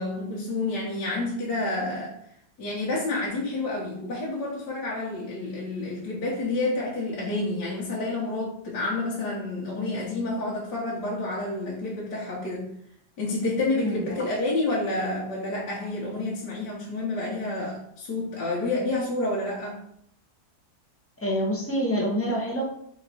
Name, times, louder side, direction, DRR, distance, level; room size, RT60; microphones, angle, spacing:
voice 1, 0.0-2.1 2.6-12.7 13.2-19.8, left 2 dB, 70° left, -5 dB, 1.5 m, -29 dB
voice 2, 21.2-22.6, equal, 10° left, -2 dB, 0.6 m, -26 dB
4.3 x 3.0 x 4.0 m, 0.70 s
omnidirectional pair, 1.9 m